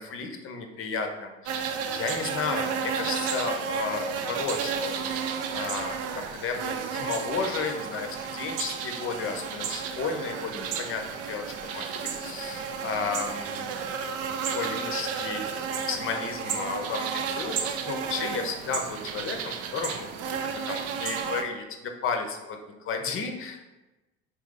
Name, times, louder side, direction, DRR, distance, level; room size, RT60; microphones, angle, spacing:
voice 1, 0.0-13.8 14.5-22.6 22.8-23.7, left 5 dB, 40° left, 4 dB, 0.7 m, -33 dB
sound 1, 1.5-21.4, right 6 dB, 45° right, 0.5 m, -32 dB
3.4 x 3.0 x 3.8 m, 1.1 s
figure-of-eight pair, 60°, 33 cm